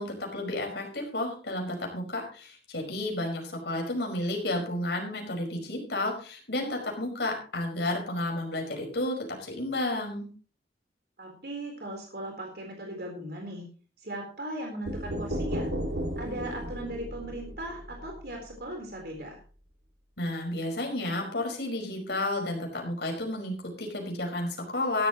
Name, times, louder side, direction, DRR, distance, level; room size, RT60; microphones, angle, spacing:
voice 1, 0.0-10.3 20.2-25.1, left 1 dB, 75° left, 1 dB, 5.3 m, -32 dB
voice 2, 11.2-13.6 14.0-15.7 16.2-19.4, right 1 dB, 60° right, 1 dB, 4.0 m, -38 dB
sound 1, 14.9-18.6, equal, 90° right, 2.5 m, -34 dB
16.0 x 12.5 x 3.1 m, 0.39 s
head